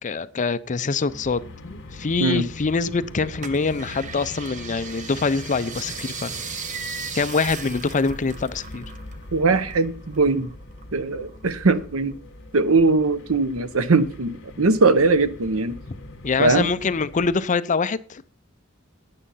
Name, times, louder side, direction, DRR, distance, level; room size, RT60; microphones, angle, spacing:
voice 1, 0.0-6.4 7.1-8.9 15.9-16.0 16.2-18.2, left 4 dB, 35° left, 0.5 m, -24 dB
sound 1, 1.1-17.4, left 1 dB, 60° left, 2.0 m, -42 dB
sound 2, 3.4-9.3 9.5-10.8 11.3-12.1 12.6-12.7, right 5 dB, 40° right, 0.9 m, -37 dB
voice 2, 9.3-10.5 10.9-12.1 12.5-15.7 16.4-16.7, right 3 dB, 80° right, 0.8 m, -20 dB
10.0 x 8.7 x 5.5 m
head